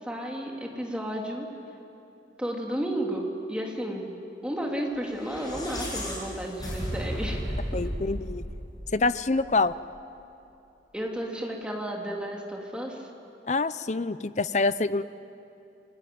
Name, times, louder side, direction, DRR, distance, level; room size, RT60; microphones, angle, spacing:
voice 1, 0.0-1.5 2.4-4.1 4.4-7.8 10.9-13.1, right 1 dB, 5° right, -1 dB, 3.0 m, -32 dB
sound 1, 5.1-9.5, equal, 20° left, 7.0 m, -34 dB
voice 2, 7.7-8.4 8.9-9.7 13.5-15.0, left 3 dB, 40° left, 15 dB, 0.6 m, -26 dB
29.5 x 20.5 x 9.4 m, 2.9 s
head